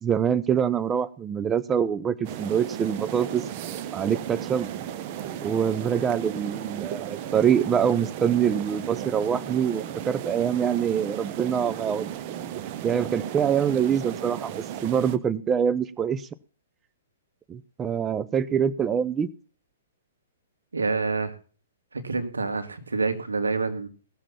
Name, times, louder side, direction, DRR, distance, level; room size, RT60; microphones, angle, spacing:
voice 1, 0.0-3.4 3.9-4.7 5.4-12.1 12.8-16.3 17.5-19.3, right 8 dB, 20° right, 16 dB, 0.6 m, -25 dB
sound 1, 2.2-15.2, right 10 dB, 40° right, 1.1 m, -35 dB
voice 2, 20.7-21.4 21.9-23.9, right 4 dB, 85° right, 7 dB, 2.1 m, -27 dB
17.5 x 7.5 x 5.7 m, 0.39 s
hypercardioid pair, 120°, 0 cm